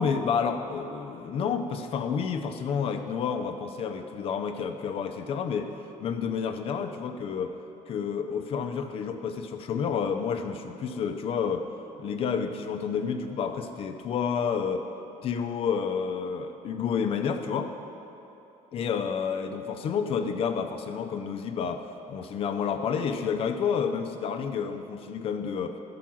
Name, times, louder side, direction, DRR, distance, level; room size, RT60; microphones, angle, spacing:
voice 1, 0.0-5.7 6.0-7.6 7.9-11.7 12.0-14.9 15.2-17.7 18.7-25.8, left 6 dB, 45° left, 6 dB, 0.5 m, -30 dB
13.0 x 4.7 x 6.2 m, 3.0 s
cardioid pair, 155°, 13 cm